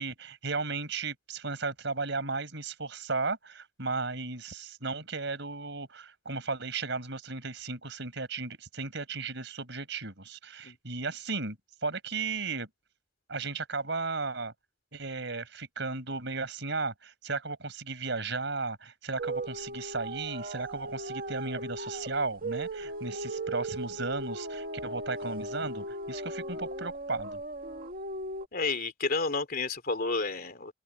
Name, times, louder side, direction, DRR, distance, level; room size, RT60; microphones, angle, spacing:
voice 1, 0.0-12.7 13.3-14.5 14.9-27.4, right 3 dB, 65° right, 5.5 m, -35 dB
sound 1, 19.2-28.5, right 1 dB, 50° right, 2.0 m, -37 dB
voice 2, 28.5-30.7, left 3 dB, 50° left, 3.0 m, -31 dB
open air
head